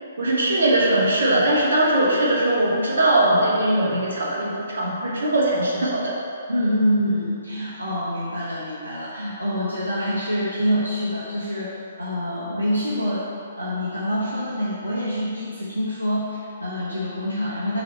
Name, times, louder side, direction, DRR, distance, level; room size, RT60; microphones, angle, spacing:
voice 1, 0.2-6.1, right 1 dB, 65° right, -5 dB, 1.4 m, -20 dB
voice 2, 6.5-11.7 12.0-13.2 13.6-17.8, equal, 85° right, -8 dB, 1.1 m, -26 dB
6.2 x 3.1 x 5.4 m, 2.5 s
figure-of-eight pair, 125°, 0 cm